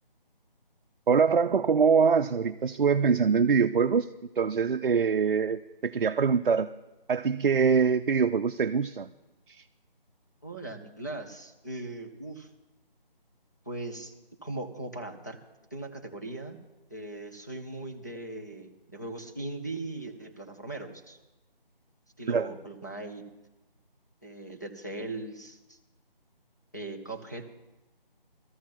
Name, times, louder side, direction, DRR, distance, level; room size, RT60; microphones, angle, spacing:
voice 1, 1.1-4.1 4.4-6.7 7.1-9.1 9.5-9.6 22.3-22.5, right 6 dB, 60° right, 7 dB, 0.5 m, -24 dB
voice 2, 10.4-12.5 13.7-14.1 14.4-15.4 15.7-16.6 16.9-21.2 22.2-23.2 24.2-25.8 26.7-27.5, right 2 dB, 20° left, 1 dB, 0.6 m, -39 dB
18.5 x 14.0 x 3.0 m, 1.0 s
figure-of-eight pair, 170°, 29 cm